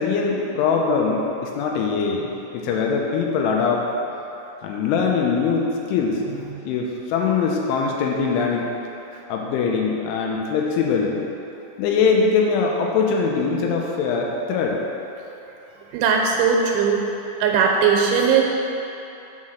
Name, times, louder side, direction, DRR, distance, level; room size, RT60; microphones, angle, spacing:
voice 1, 0.0-3.9 4.6-6.2 6.7-8.7 9.3-11.2 11.8-14.8, left 5 dB, 85° left, 0 dB, 3.1 m, -22 dB
voice 2, 15.9-17.0 17.4-18.4, right 6 dB, 80° right, 0 dB, 3.0 m, -18 dB
6.4 x 5.7 x 6.2 m, 2.9 s
omnidirectional pair, 5.7 m